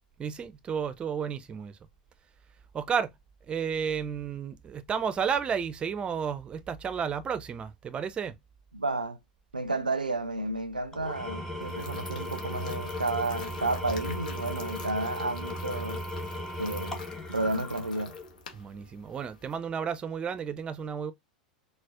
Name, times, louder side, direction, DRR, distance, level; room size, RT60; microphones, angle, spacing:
voice 1, 0.2-1.8 2.7-3.1 3.5-8.4 18.5-21.1, right 7 dB, 25° right, 0.4 m, -32 dB
voice 2, 8.7-9.2 9.5-16.0 16.6-17.0 17.3-18.1, right 2 dB, 90° right, 0.4 m, -31 dB
Engine / Tools, 10.9-18.4, left 1 dB, 10° left, 0.8 m, -37 dB
sound 1, 11.6-19.6, left 5 dB, 70° left, 0.7 m, -48 dB
4.0 x 2.1 x 2.3 m
figure-of-eight pair, 90°, 4 cm